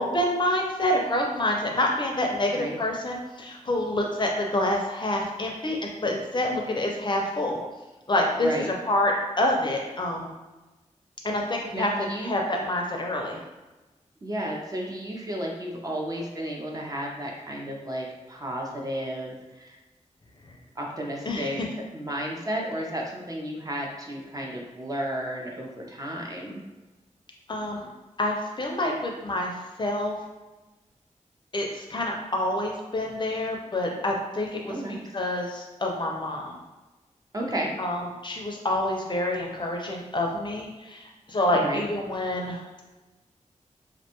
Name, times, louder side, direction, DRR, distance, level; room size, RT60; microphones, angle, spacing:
voice 1, 0.0-7.6 8.1-8.5 8.9-10.3 11.2-11.9 12.2-13.4 21.3-21.7 27.5-27.9 28.2-29.5 29.8-30.2 31.5-34.7 35.1-36.5 37.8-42.6, left 1 dB, 35° left, 0 dB, 0.4 m, -27 dB
voice 2, 8.4-8.7 11.7-12.4 14.2-19.8 20.8-21.6 21.9-26.6 34.7-35.0 37.3-37.7 41.5-41.8, right 1 dB, 30° right, -1 dB, 0.5 m, -33 dB
2.5 x 2.2 x 2.9 m, 1.1 s
wide cardioid pair, 100°, 13 cm